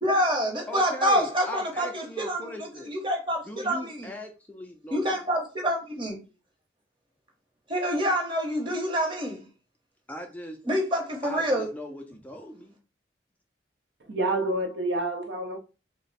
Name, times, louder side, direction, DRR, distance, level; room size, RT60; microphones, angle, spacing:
voice 1, 0.0-4.1 4.9-6.2 7.7-9.4 10.6-11.7, equal, 25° right, 0.8 m, -27 dB
voice 2, 0.7-2.9 3.5-5.0 10.1-10.6 11.2-12.7, equal, 10° left, 0.3 m, -39 dB
voice 3, 14.1-15.6, right 2 dB, 75° right, 0.6 m, -28 dB
3.2 x 2.0 x 3.9 m
head